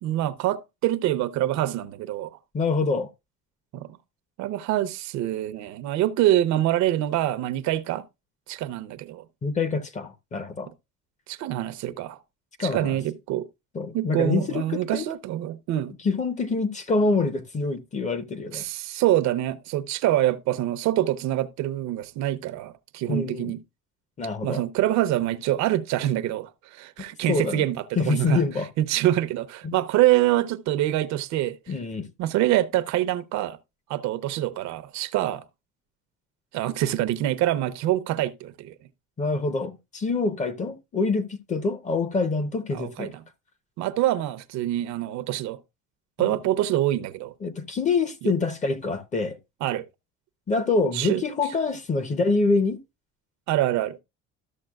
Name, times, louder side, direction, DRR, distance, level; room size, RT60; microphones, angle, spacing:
voice 1, 0.0-2.4 3.7-4.0 4.4-8.0 8.5-9.2 11.3-12.2 12.6-13.5 13.9-15.9 18.5-23.6 24.4-28.4 28.8-31.6 32.2-33.6 33.9-35.4 36.5-38.7 42.7-43.2 43.8-45.6 46.2-47.3 48.2-48.3 49.6-49.8 50.9-51.2 53.5-54.0, right 14 dB, 65° right, 0.7 m, -25 dB
voice 2, 2.5-3.1 9.4-10.7 12.6-13.0 13.7-15.1 16.0-18.6 23.1-23.5 24.2-24.6 27.3-27.6 28.0-28.7 29.6-29.7 31.7-32.1 39.2-43.1 46.2-46.3 47.4-49.4 50.5-52.8, left 3 dB, 25° left, 0.7 m, -26 dB
13.0 x 6.9 x 2.3 m
cardioid pair, 165°, 30 cm